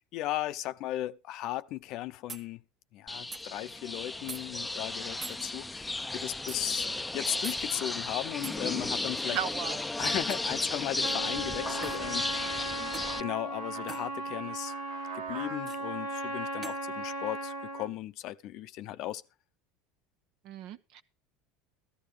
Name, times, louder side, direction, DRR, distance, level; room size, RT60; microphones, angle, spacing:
voice 1, 0.1-2.6 2.9-6.9 7.1-9.4 10.0-12.6 13.2-14.7 15.1-19.2, left 14 dB, 60° left, 0.7 m, -36 dB
sound 1, 1.8-1.9 2.3-2.5 3.3-3.5 4.3-4.4 5.2-5.4 6.5-6.6 7.4-7.6 8.4-8.6 10.3-10.5 11.8-12.0 12.9-13.2 13.9-14.1 15.7-15.8 16.6-16.8, right 5 dB, 35° right, 1.4 m, -42 dB
sound 2, 3.1-13.2, left 2 dB, 10° left, 0.6 m, -34 dB
voice 2, 9.3-9.8 20.4-21.0, right 10 dB, 65° right, 1.1 m, -35 dB
Trumpet, 11.0-17.9, right 1 dB, 85° right, 1.8 m, -36 dB
14.0 x 13.5 x 3.3 m
hypercardioid pair, 90°, 0 cm